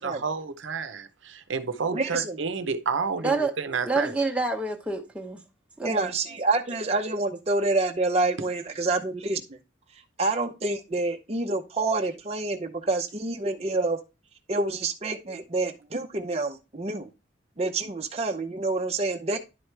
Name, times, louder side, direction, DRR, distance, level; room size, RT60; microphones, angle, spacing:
voice 1, 0.0-4.2, right 5 dB, 90° right, 0.7 m, -30 dB
voice 2, 1.9-2.4 5.8-9.6 10.2-14.0 14.5-17.1 17.6-19.4, right 2 dB, 35° right, 0.7 m, -27 dB
voice 3, 3.2-3.5 3.8-5.4 5.8-6.1, right 3 dB, 5° right, 0.9 m, -27 dB
10.5 x 4.6 x 3.3 m
head